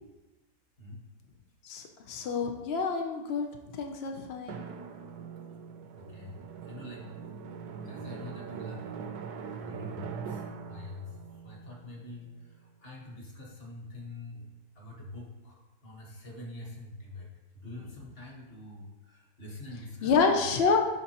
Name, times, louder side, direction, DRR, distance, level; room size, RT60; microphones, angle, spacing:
voice 1, 1.6-3.5 3.7-4.6 20.0-20.8, left 5 dB, 85° left, 3 dB, 0.5 m, -28 dB
Drum, 4.5-12.8, right 6 dB, 70° right, 1.1 m, -42 dB
voice 2, 6.0-7.1 7.8-9.0 9.4-14.5 14.7-20.1, left 2 dB, 35° left, -2 dB, 1.4 m, -45 dB
11.0 x 3.9 x 2.9 m, 1.1 s
omnidirectional pair, 1.9 m